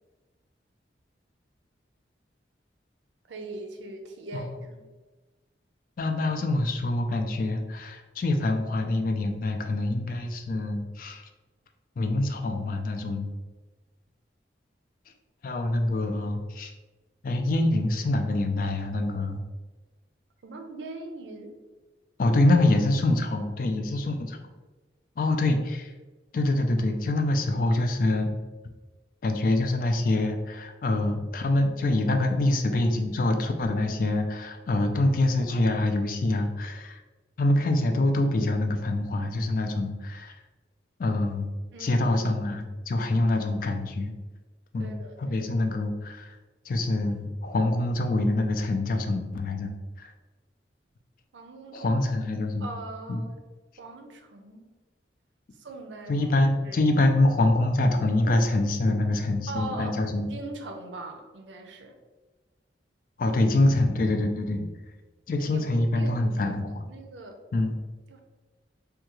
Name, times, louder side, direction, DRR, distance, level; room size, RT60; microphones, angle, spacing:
voice 1, 3.3-4.8 20.4-21.6 41.7-42.1 44.8-45.4 51.3-52.0 52.3-53.5 53.8-54.7 55.6-56.3 56.6-56.8 59.5-60.0 60.3-62.0 65.4-66.5 66.9-67.4 68.1-68.2, right 2 dB, 90° right, 4 dB, 0.5 m, -41 dB
voice 2, 6.0-11.2 12.0-13.3 15.4-16.7 17.2-19.4 22.2-24.4 25.2-25.9 26.3-28.3 29.2-37.0 37.4-40.4 41.0-41.5 41.8-44.1 44.7-44.9 45.2-46.4 46.7-49.7 50.0-50.1 51.7-52.7 53.1-53.2 56.1-60.3 63.2-64.7 65.3-66.8 67.5-67.7, left 2 dB, 50° left, 5 dB, 0.3 m, -25 dB
3.5 x 2.3 x 3.0 m, 1.2 s
head